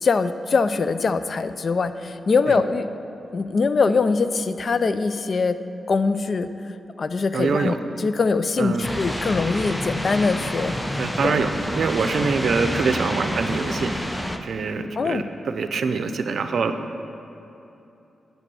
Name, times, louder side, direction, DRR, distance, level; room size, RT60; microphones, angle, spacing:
voice 1, 0.0-2.9 3.3-5.6 5.9-6.7 7.0-11.5 15.0-15.2, left 4 dB, 55° left, 12 dB, 0.4 m, -23 dB
voice 2, 7.3-7.8 8.6-8.9 11.0-11.5 11.7-13.9 14.4-16.7, right 5 dB, 70° right, 8 dB, 0.6 m, -24 dB
sound 1, 8.8-14.4, equal, 10° left, 0.7 m, -28 dB
8.3 x 6.2 x 6.9 m, 2.9 s
cardioid pair, 55°, 0 cm